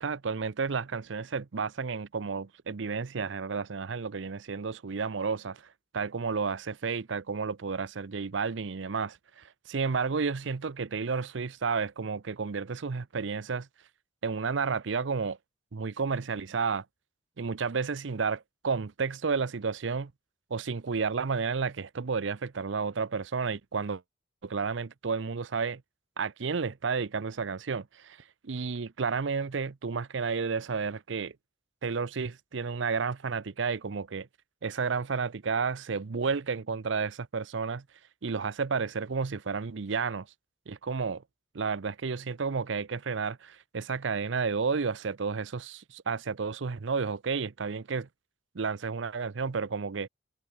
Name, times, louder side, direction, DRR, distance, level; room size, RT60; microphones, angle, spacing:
voice 1, 0.0-5.6 5.9-13.7 14.2-15.4 15.7-16.8 17.4-20.1 20.5-24.0 24.4-25.8 26.2-28.2 28.4-31.3 31.8-34.3 34.6-37.8 38.2-40.3 40.7-41.2 41.5-48.1 48.5-50.1, right 5 dB, 70° right, 0.6 m, -31 dB
head